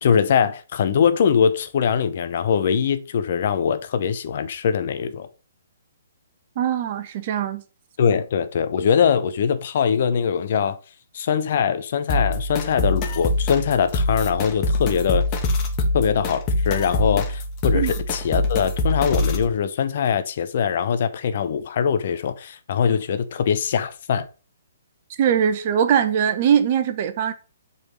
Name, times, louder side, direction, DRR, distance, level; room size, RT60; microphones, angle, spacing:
voice 1, 0.0-5.3 8.0-10.8 11.1-15.2 15.9-24.3, left 7 dB, 50° left, 1.0 m, -22 dB
voice 2, 6.6-7.6 17.7-17.9 25.2-27.3, right 8 dB, 40° right, 1.1 m, -21 dB
sound 1, 12.1-19.5, left 2 dB, 25° left, 1.6 m, -24 dB
7.9 x 4.3 x 5.3 m
figure-of-eight pair, 130°, 0 cm